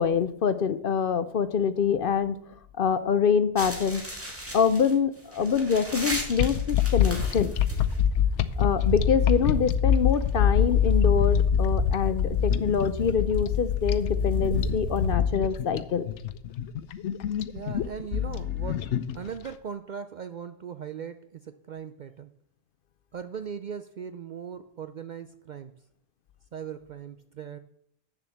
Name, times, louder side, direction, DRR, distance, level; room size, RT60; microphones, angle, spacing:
voice 1, 0.0-2.4 2.7-4.0 4.5-7.6 8.6-16.1, left 6 dB, 55° left, 13 dB, 0.7 m, -25 dB
sound 1, 3.6-15.1, left 1 dB, 10° right, 2.0 m, -33 dB
sound 2, 6.4-19.5, left 9 dB, 85° left, 0.9 m, -25 dB
voice 2, 17.5-22.3 23.1-25.7 26.5-27.6, right 7 dB, 55° right, 10 dB, 0.5 m, -39 dB
8.4 x 7.1 x 7.0 m, 0.69 s
omnidirectional pair, 1.2 m